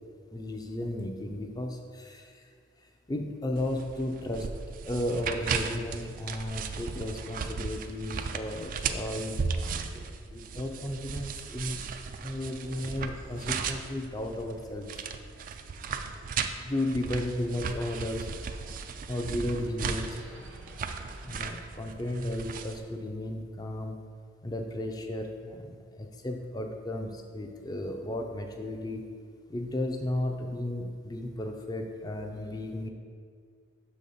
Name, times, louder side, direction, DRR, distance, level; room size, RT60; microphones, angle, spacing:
voice 1, 0.3-2.5 2.8-4.5 4.9-11.8 12.2-15.0 16.6-18.3 19.1-20.2 21.3-24.0 24.4-29.1 29.5-32.9, left 1 dB, 20° left, 4 dB, 0.4 m, -34 dB
sound 1, 3.6-22.8, right 5 dB, 45° right, 0.3 m, -36 dB
sound 2, 12.6-22.0, right 1 dB, 90° right, 1.2 m, -53 dB
6.1 x 4.1 x 5.0 m, 2.1 s
head